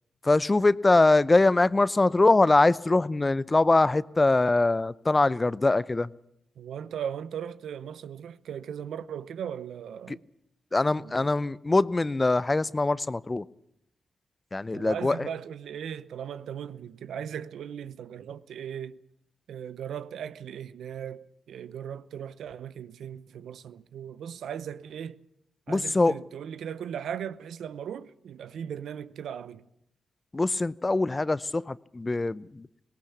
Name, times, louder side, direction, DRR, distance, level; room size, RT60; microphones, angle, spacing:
voice 1, 0.2-6.1 10.1-10.2 10.7-13.4 14.5-15.3 25.7-26.1 30.3-32.7, left 2 dB, 30° left, 0.7 m, -23 dB
voice 2, 6.6-10.2 11.0-11.3 14.7-19.0 19.5-25.2 25.7-29.7, right 8 dB, 75° right, 0.8 m, -38 dB
18.5 x 18.0 x 8.4 m
supercardioid pair, 45°, 0 cm